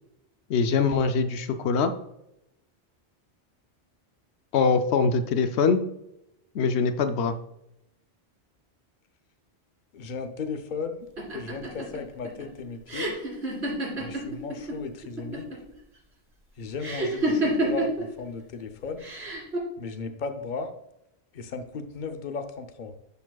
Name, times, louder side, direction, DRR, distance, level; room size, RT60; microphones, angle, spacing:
voice 1, 0.5-1.9 4.5-5.8 6.5-7.4, left 5 dB, 85° left, 9 dB, 0.9 m, -23 dB
voice 2, 9.9-11.1 11.3-13.2 14.0-15.5 16.6-19.0 19.8-20.7 21.3-22.9, left 4 dB, 50° left, 6 dB, 0.8 m, -35 dB
sound 1, 11.2-14.8 15.0-15.7 16.8-18.0 19.0-19.6, right 2 dB, 85° right, 2.7 m, -28 dB
11.5 x 4.8 x 2.3 m, 0.83 s
omnidirectional pair, 1.1 m